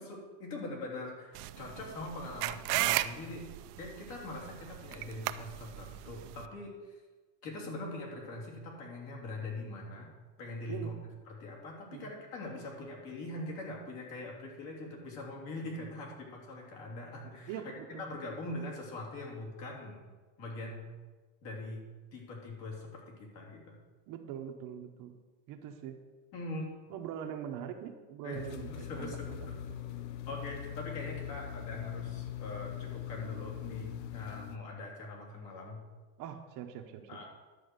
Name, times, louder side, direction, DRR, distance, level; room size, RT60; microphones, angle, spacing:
voice 1, 0.0-3.5 3.8-7.0 7.4-10.1 10.4-10.9 11.3-17.6 18.0-20.0 20.4-20.9 21.4-21.9 22.1-23.8 26.3-26.7 28.2-29.6 30.3-35.8 37.1-37.2, left 2 dB, 55° left, -2 dB, 3.3 m, -42 dB
sound 1, 1.3-6.5, right 16 dB, 70° right, 0.6 m, -35 dB
voice 2, 17.5-18.1 24.1-25.2 25.5-26.0 26.9-29.4 30.0-30.1 36.2-37.1, right 9 dB, 40° right, 4 dB, 0.9 m, -42 dB
sound 2, 28.3-34.6, left 11 dB, 85° left, 0.9 m, -41 dB
11.0 x 4.7 x 8.0 m, 1.3 s
supercardioid pair, 145°, 49 cm